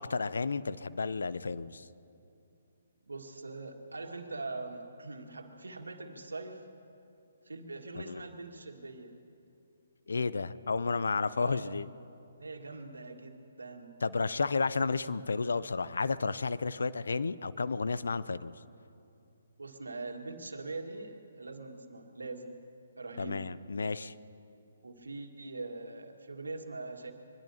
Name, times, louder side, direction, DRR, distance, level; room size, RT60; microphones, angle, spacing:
voice 1, 0.0-1.8 8.1-8.2 10.1-11.9 14.0-18.5 23.2-24.1, left 4 dB, 70° left, 15 dB, 0.6 m, -32 dB
voice 2, 3.0-6.6 7.4-9.2 11.4-11.9 12.4-14.0 19.6-22.6 23.0-23.5 24.8-27.1, right 3 dB, 80° right, 3 dB, 1.9 m, -42 dB
24.5 x 20.5 x 2.9 m, 2.6 s
figure-of-eight pair, 135°, 0 cm